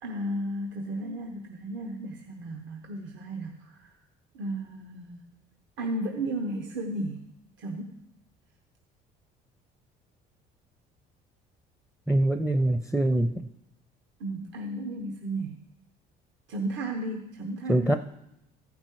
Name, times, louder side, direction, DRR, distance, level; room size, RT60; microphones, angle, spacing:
voice 1, 0.0-3.9 4.3-5.2 5.8-7.2 7.6-8.0 14.2-15.6 16.5-18.0, right 1 dB, 65° right, 3 dB, 1.1 m, -34 dB
voice 2, 12.1-13.5 17.7-18.0, right 1 dB, ahead, 9 dB, 0.5 m, -24 dB
14.5 x 5.3 x 4.7 m, 0.84 s
supercardioid pair, 80°, 21 cm